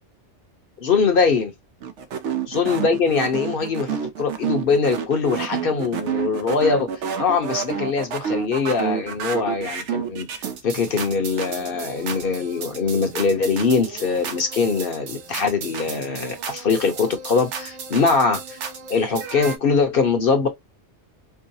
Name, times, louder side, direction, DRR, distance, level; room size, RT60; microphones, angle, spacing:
voice 1, 0.8-1.5 2.5-6.9 7.2-10.3 10.6-18.6 18.9-20.5, left 5 dB, 55° left, 1.0 m, -22 dB
sound 1, 1.8-19.6, right 7 dB, 80° right, 0.9 m, -31 dB
4.6 x 2.0 x 2.6 m
omnidirectional pair, 1.2 m